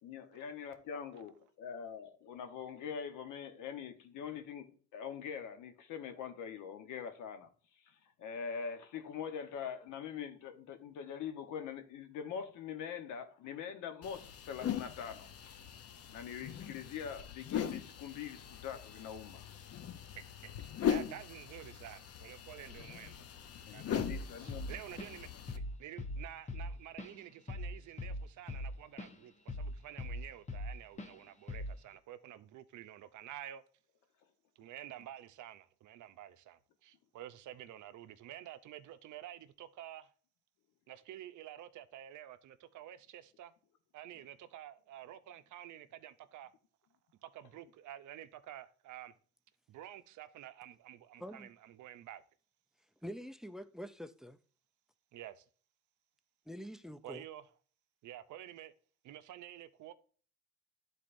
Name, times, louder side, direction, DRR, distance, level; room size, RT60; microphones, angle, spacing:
voice 1, 0.0-7.5 7.8-15.7 16.1-19.6 23.7-24.7, left 7 dB, 85° left, 1.0 m, -43 dB
sound 1, 14.0-25.6, left 8 dB, 55° left, 0.7 m, -40 dB
voice 2, 20.2-23.3 23.7-33.6 34.6-40.1 40.9-43.5 43.9-46.5 47.2-49.1 49.7-52.2 55.1-55.4 57.0-57.4 58.0-58.7 59.0-59.9, right 12 dB, 75° right, 0.6 m, -50 dB
Drum kit / Drum, 24.0-24.2 24.5-25.2 25.5-25.7 26.0-29.2 29.5-30.7 31.0-31.2 31.5-31.8, left 1 dB, 25° left, 0.8 m, -40 dB
voice 3, 53.0-54.4 56.5-57.2, equal, ahead, 0.4 m, -45 dB
11.5 x 4.1 x 2.5 m
cardioid pair, 90°, 30 cm